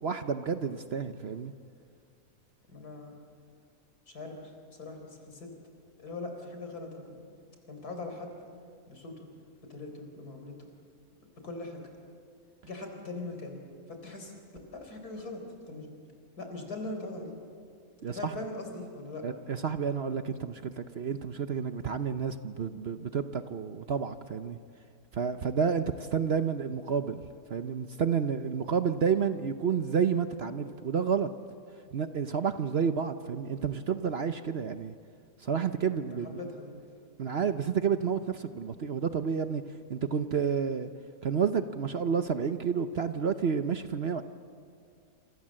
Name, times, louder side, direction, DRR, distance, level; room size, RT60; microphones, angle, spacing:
voice 1, 0.0-1.5 18.0-18.3 19.2-24.6 25.1-27.2 27.5-31.3 31.9-34.9 35.4-36.4 37.2-39.6 39.9-40.9 41.2-44.2, right 6 dB, 50° right, 10 dB, 0.9 m, -30 dB
voice 2, 2.7-3.2 4.1-5.5 6.0-7.2 7.7-8.3 8.9-9.3 9.7-10.7 11.4-11.8 12.6-13.6 13.9-14.3 14.7-15.9 16.4-17.3 18.1-19.3 36.1-36.8, left 2 dB, 80° left, 4 dB, 4.8 m, -41 dB
28.0 x 27.5 x 7.6 m, 2.2 s
omnidirectional pair, 1.6 m